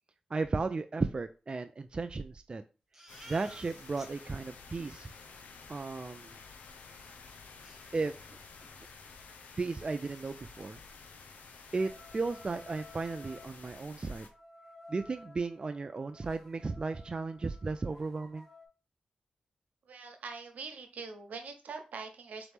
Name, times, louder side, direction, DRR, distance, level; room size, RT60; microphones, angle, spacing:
voice 1, 0.3-2.6 3.3-5.1 5.7-6.4 7.9-8.4 9.6-10.8 11.7-14.3 14.9-18.5, right 3 dB, 35° right, 7 dB, 0.3 m, -35 dB
Crying sobbing, 2.9-4.1 4.5-4.6 4.8-5.2 7.0-7.1 7.6-8.4 8.7-8.9 9.3-9.4 9.7-10.4, right 1 dB, 10° right, 1.3 m, -55 dB
sound 1, 3.1-14.3, left 4 dB, 80° left, 0.6 m, -52 dB
sound 2, 11.8-13.5 14.2-18.7, left 2 dB, 15° left, 1.1 m, -54 dB
voice 2, 19.9-22.5, right 4 dB, 75° right, 6 dB, 0.8 m, -43 dB
4.0 x 3.0 x 3.4 m, 0.33 s
cardioid pair, 60°, 3 cm